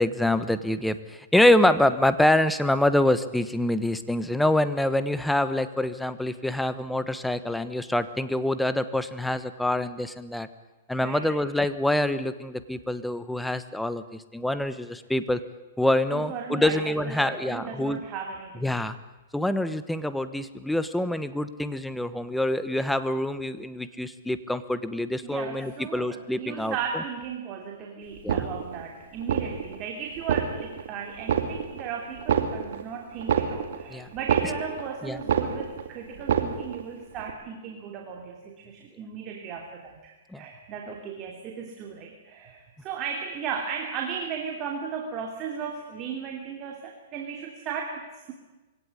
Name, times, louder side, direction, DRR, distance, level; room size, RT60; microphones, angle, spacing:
voice 1, 0.0-10.5 10.9-15.4 15.8-18.0 18.6-18.9 19.3-27.0 28.2-28.5 33.9-34.1 35.0-35.2 40.3-40.4, left 1 dB, 5° left, 12 dB, 1.1 m, -25 dB
voice 2, 11.0-11.3 16.1-18.7 25.2-48.3, right 6 dB, 30° right, 2 dB, 3.0 m, -36 dB
sound 1, 28.2-28.9 29.2-29.8 30.2-30.9 31.2-31.9 32.2-34.9 35.2-35.9 36.2-36.9 37.2-37.3, right 7 dB, 70° right, 2.5 m, -27 dB
23.0 x 17.5 x 9.7 m, 1.1 s
hypercardioid pair, 145°, 0 cm